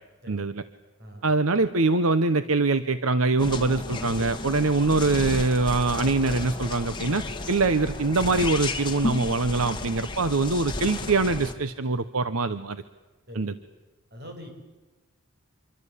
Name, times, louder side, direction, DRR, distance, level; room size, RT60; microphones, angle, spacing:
voice 1, 0.3-0.6 1.2-12.8 13.3-13.5, right 3 dB, 75° right, 12 dB, 1.0 m, -24 dB
sound 1, 3.4-11.5, left 2 dB, 20° left, 2.2 m, -33 dB
voice 2, 14.1-14.5, equal, 50° right, 4 dB, 6.9 m, -42 dB
27.0 x 24.0 x 8.5 m, 1.2 s
head